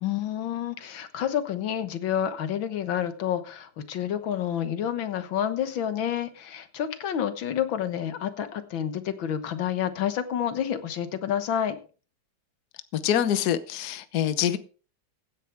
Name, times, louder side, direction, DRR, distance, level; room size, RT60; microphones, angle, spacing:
voice 1, 0.0-11.8, left 9 dB, 85° left, 2.0 m, -29 dB
voice 2, 13.0-14.6, left 10 dB, 60° left, 1.3 m, -25 dB
16.0 x 10.0 x 3.5 m
omnidirectional pair, 2.1 m